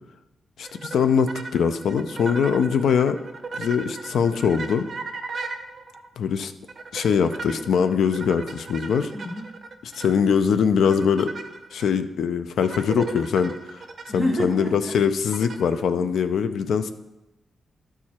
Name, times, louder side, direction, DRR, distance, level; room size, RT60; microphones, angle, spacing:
voice 1, 0.6-3.2 3.5-4.9 6.2-6.5 6.9-9.1 9.9-11.3 11.7-13.8 14.1-16.9, left 6 dB, 80° left, 10 dB, 0.5 m, -22 dB
sound 1, 0.6-6.1 6.7-10.4 10.8-11.9 12.6-14.6 15.3-15.7, right 4 dB, 40° right, 0.6 m, -37 dB
voice 2, 9.1-9.5 14.1-14.9 16.0-16.1, equal, 15° left, -1 dB, 1.4 m, -29 dB
12.0 x 4.7 x 4.3 m, 0.99 s
wide cardioid pair, 175°, 0 cm